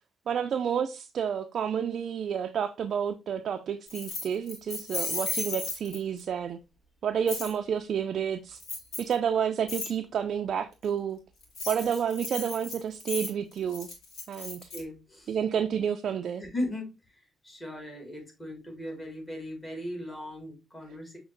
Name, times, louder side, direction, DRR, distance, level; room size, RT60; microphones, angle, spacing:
voice 1, 0.3-6.6 7.0-8.6 9.0-11.2 11.7-13.9 14.3-14.6 15.3-16.4, right 8 dB, 60° right, 0.3 m, -30 dB
Keys jangling, 3.9-6.2 7.3-7.5 8.6-9.1 9.7-9.9 11.4-14.8, left 3 dB, 70° left, 1.6 m, -35 dB
voice 2, 14.7-15.4 16.4-17.0 17.4-21.2, left 1 dB, 20° left, 1.8 m, -37 dB
6.2 x 2.8 x 2.5 m
cardioid pair, 90°, 0 cm